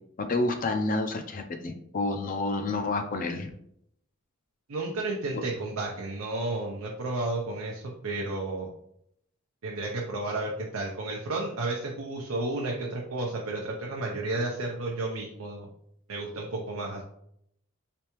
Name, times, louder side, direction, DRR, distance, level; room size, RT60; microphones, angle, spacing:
voice 1, 0.2-3.5 5.3-5.4, left 2 dB, 40° left, 6 dB, 0.5 m, -29 dB
voice 2, 4.7-8.7 9.6-15.7 16.1-17.0, right 2 dB, 90° right, -1 dB, 0.6 m, -32 dB
3.4 x 3.3 x 3.0 m, 0.72 s
head